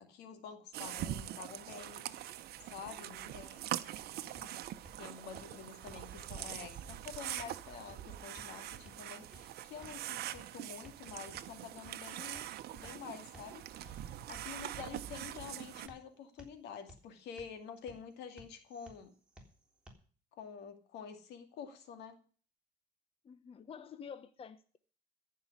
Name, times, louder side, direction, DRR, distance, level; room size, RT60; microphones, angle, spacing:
voice 1, 0.0-2.1 2.6-3.6 5.0-12.5 12.7-19.1 20.4-22.2, left 7 dB, 80° left, 7 dB, 2.3 m, -48 dB
sound 1, 0.7-15.9, right 12 dB, 70° right, 0.9 m, -43 dB
voice 2, 3.0-3.6 4.2-4.5 23.2-24.8, left 7 dB, 35° left, 12 dB, 0.9 m, -51 dB
sound 2, 4.3-19.9, right 1 dB, 5° right, 3.5 m, -60 dB
14.5 x 5.6 x 9.6 m, 0.42 s
cardioid pair, 110°, 17 cm